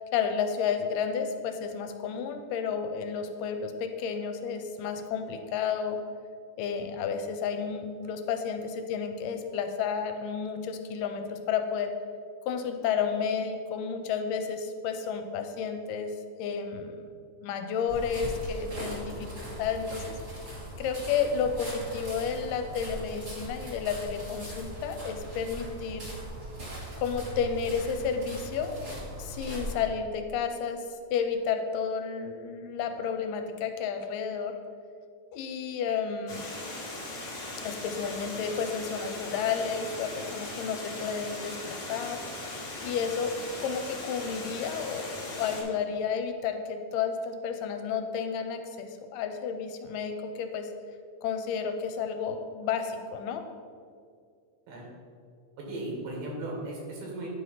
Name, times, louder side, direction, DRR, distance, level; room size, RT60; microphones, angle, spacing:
voice 1, 0.1-6.0 6.6-11.9 12.5-16.1 16.4-20.2 20.8-26.2 27.0-28.8 29.2-30.8 31.1-34.5 35.3-36.5 37.6-42.2 42.8-43.3 43.6-50.7 51.2-53.4, left 6 dB, 85° left, 6 dB, 2.2 m, -31 dB
sound 1, 17.9-29.8, right 1 dB, 30° right, 1.7 m, -40 dB
Water, 36.3-45.6, left 2 dB, 45° left, 1.4 m, -39 dB
voice 2, 55.6-57.3, right 2 dB, 90° right, -2 dB, 3.3 m, -36 dB
9.7 x 3.4 x 5.5 m, 2.2 s
omnidirectional pair, 3.8 m